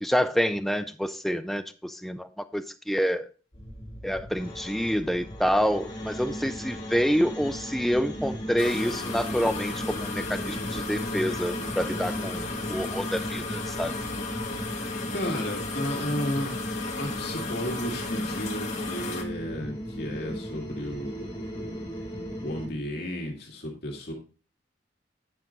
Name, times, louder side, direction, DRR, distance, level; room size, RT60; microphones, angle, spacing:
voice 1, 0.0-3.3 4.0-13.9, equal, ahead, 0.4 m, -27 dB
sound 1, 3.5-22.7, equal, 20° left, 3.5 m, -37 dB
sound 2, 8.6-19.2, left 3 dB, 40° left, 1.5 m, -35 dB
voice 2, 15.1-16.6 16.9-21.9 22.4-24.1, equal, 55° left, 2.1 m, -33 dB
9.9 x 5.8 x 3.8 m
head